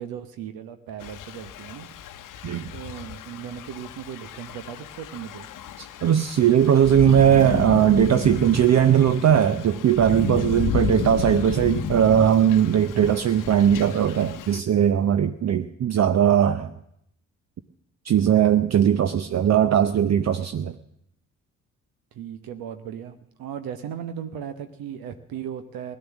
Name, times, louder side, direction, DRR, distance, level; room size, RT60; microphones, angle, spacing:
voice 1, 0.0-1.9 2.7-5.5 22.1-26.0, right 9 dB, 65° right, 9 dB, 1.1 m, -37 dB
Thunder / Rain, 1.0-14.6, left 8 dB, 55° left, 0.9 m, -33 dB
voice 2, 5.8-16.7 18.1-20.7, right 9 dB, 45° right, 10 dB, 0.8 m, -19 dB
17.5 x 11.0 x 7.3 m, 0.75 s
hypercardioid pair, 45°, 38 cm